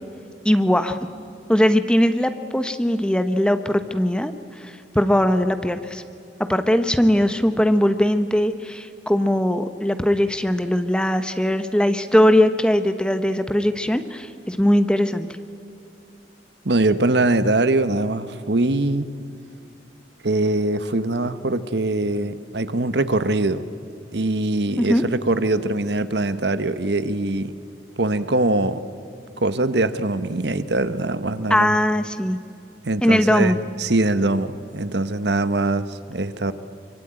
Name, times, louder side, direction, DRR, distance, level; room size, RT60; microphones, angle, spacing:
voice 1, 0.4-1.0 1.5-6.0 6.5-15.3 24.8-25.0 31.5-32.4 33.0-33.6, equal, 5° left, 9 dB, 0.9 m, -20 dB
voice 2, 16.6-19.1 20.2-23.7 24.1-27.5 28.0-28.8 29.4-31.8 32.8-36.5, right 2 dB, 70° right, 12 dB, 1.1 m, -22 dB
24.5 x 24.0 x 8.9 m, 2.6 s
head